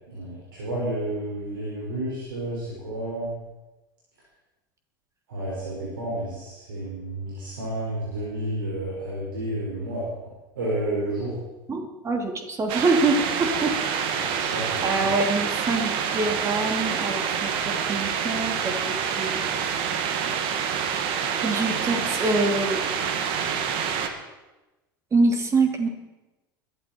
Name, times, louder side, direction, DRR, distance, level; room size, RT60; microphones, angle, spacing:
voice 1, 0.1-3.3 5.3-10.0 10.6-11.3 14.3-15.2, right 1 dB, 75° right, -7 dB, 5.8 m, -31 dB
voice 2, 11.7-19.4 21.4-22.8 25.1-25.9, right 3 dB, 25° right, 4 dB, 3.0 m, -25 dB
sound 1, 12.7-24.1, right 7 dB, 50° right, 1.8 m, -27 dB
21.5 x 12.0 x 4.6 m, 1.1 s
hypercardioid pair, 80°, 11 cm